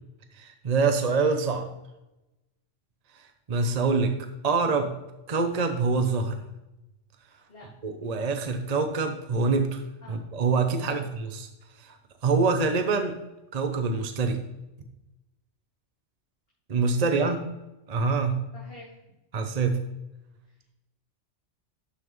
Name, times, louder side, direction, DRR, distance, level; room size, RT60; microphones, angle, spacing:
voice 1, 0.4-1.7 3.5-4.1 4.4-4.9 5.3-6.4 7.8-9.8 10.1-11.5 11.8-12.0 12.2-13.2 13.5-14.4 16.7-17.4 17.9-18.4 19.3-19.8, right 4 dB, 40° right, 6 dB, 0.8 m, -25 dB
voice 2, 17.0-17.3 18.5-19.0, left 1 dB, 50° left, -6 dB, 2.4 m, -45 dB
12.0 x 5.8 x 3.1 m, 0.96 s
omnidirectional pair, 1.2 m